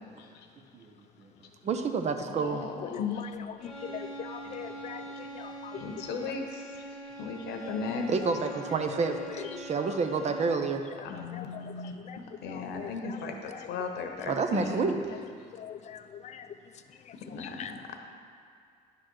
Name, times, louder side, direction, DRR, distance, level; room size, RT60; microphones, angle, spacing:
voice 1, 1.6-2.6 4.5-4.8 8.1-9.2 9.6-10.8 14.3-15.0, right 5 dB, 40° right, 6 dB, 0.6 m, -29 dB
voice 2, 2.3-3.3 5.8-6.9 7.2-8.1 11.0-12.1 12.4-14.8 17.3-18.0, left 5 dB, 80° left, 4 dB, 1.0 m, -36 dB
voice 3, 2.8-3.3 3.6-5.8 9.4-9.6 11.1-12.2 12.5-13.7 15.5-16.5 17.1-17.7, left 8 dB, 45° left, 9 dB, 0.5 m, -42 dB
sound 1, 3.6-10.8, right 1 dB, 5° left, 1.3 m, -43 dB
10.0 x 4.1 x 6.3 m, 2.2 s
cardioid pair, 110°, 17 cm